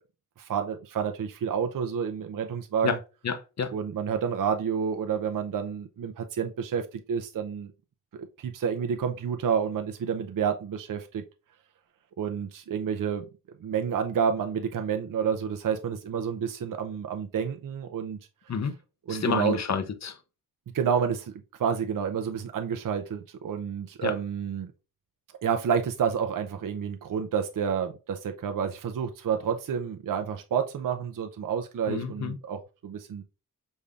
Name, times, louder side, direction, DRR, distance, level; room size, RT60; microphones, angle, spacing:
voice 1, 0.4-3.0 3.7-7.7 8.1-11.2 12.2-13.2 13.6-18.2 19.1-19.6 20.7-21.3 21.6-24.7 25.4-33.2, right 7 dB, 60° right, 0.6 m, -29 dB
voice 2, 3.2-3.7 18.5-18.7 19.1-20.2 24.0-24.2 31.9-32.4, left 5 dB, 45° left, 0.7 m, -29 dB
5.3 x 3.4 x 2.3 m
wide cardioid pair, 140°, 37 cm